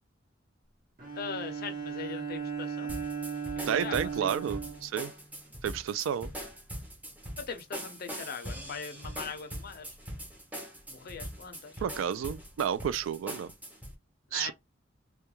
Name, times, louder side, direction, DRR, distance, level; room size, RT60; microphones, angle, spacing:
Bowed string instrument, 1.0-5.6, right 6 dB, 45° right, 1.0 m, -37 dB
voice 1, 1.2-2.9 3.6-4.7 7.4-9.9 10.9-11.8 14.3-14.5, left 6 dB, 50° left, 0.5 m, -41 dB
sound 1, 2.9-13.9, equal, 10° right, 0.6 m, -42 dB
voice 2, 3.7-5.1 5.6-6.3 11.8-13.5 14.3-14.5, right 8 dB, 80° right, 0.3 m, -31 dB
2.3 x 2.2 x 3.0 m
head